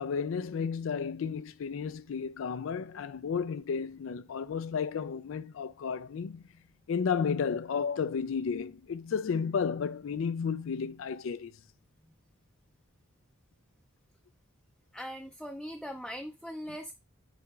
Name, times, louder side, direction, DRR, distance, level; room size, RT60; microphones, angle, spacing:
voice 1, 0.0-6.4 6.9-11.5, left 6 dB, 70° left, 0.4 m, -32 dB
voice 2, 14.9-16.9, equal, ahead, 0.5 m, -40 dB
8.2 x 4.9 x 2.3 m
head